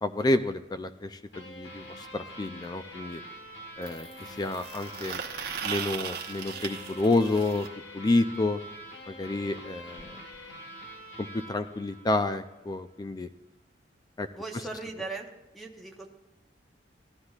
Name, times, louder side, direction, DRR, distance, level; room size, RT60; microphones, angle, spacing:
voice 1, 0.0-3.2 3.8-5.2 5.6-7.7 7.9-8.6 9.1-10.2 11.2-13.3 14.2-14.3 14.5-14.6, left 2 dB, 25° left, 10 dB, 0.4 m, -29 dB
sound 1, 1.3-12.6, equal, 75° left, 1.3 m, -45 dB
sound 2, 1.8-1.9 3.8-7.7 9.6-9.7 10.0-10.1 10.3-10.5 11.4-11.5, right 7 dB, 60° right, 0.9 m, -38 dB
voice 2, 14.3-15.3 15.5-16.1, right 3 dB, ahead, 2 dB, 0.9 m, -38 dB
17.0 x 11.5 x 2.4 m, 1.0 s
head